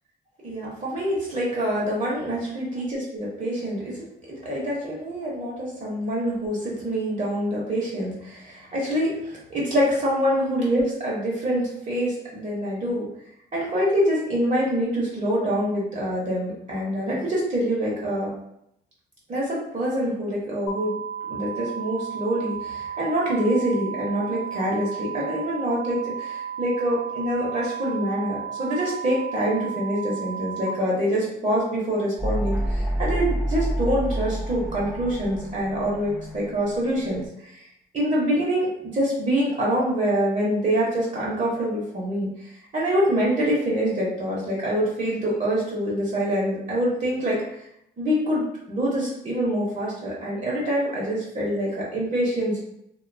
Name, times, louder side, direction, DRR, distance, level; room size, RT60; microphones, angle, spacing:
voice 1, 0.4-13.1 13.5-18.3 19.3-20.9 21.3-37.6 37.9-42.3 42.7-47.4 48.0-52.6, equal, 40° right, -5 dB, 0.8 m, -25 dB
sound 1, 20.7-30.7, right 7 dB, 90° left, 0.6 m, -34 dB
sound 2, 32.2-37.3, right 1 dB, ahead, 0.5 m, -29 dB
2.5 x 2.2 x 2.5 m, 0.79 s
cardioid pair, 100°, 19 cm